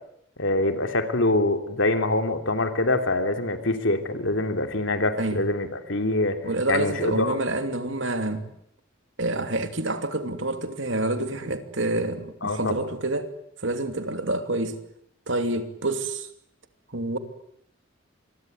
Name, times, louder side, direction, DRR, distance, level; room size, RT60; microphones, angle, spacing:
voice 1, 0.4-6.4 6.7-7.4 12.4-12.7, left 2 dB, 70° left, 3.0 m, -24 dB
voice 2, 6.4-8.4 9.2-13.3 13.6-14.8 15.3-16.3 16.9-17.2, right 2 dB, 70° right, 2.8 m, -27 dB
27.0 x 22.0 x 9.4 m
head